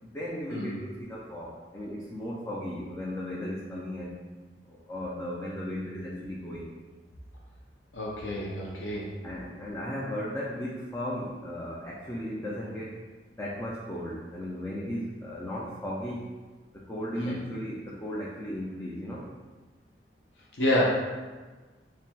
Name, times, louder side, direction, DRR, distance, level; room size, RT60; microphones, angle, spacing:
voice 1, 0.0-4.1 4.7-6.7 9.2-13.0 13.4-16.2 16.7-19.2, equal, 15° left, -5 dB, 0.4 m, -36 dB
voice 2, 7.9-9.1 17.2-17.4 20.6-20.8, left 1 dB, 85° left, -4 dB, 0.7 m, -29 dB
4.3 x 3.3 x 2.3 m, 1.3 s
head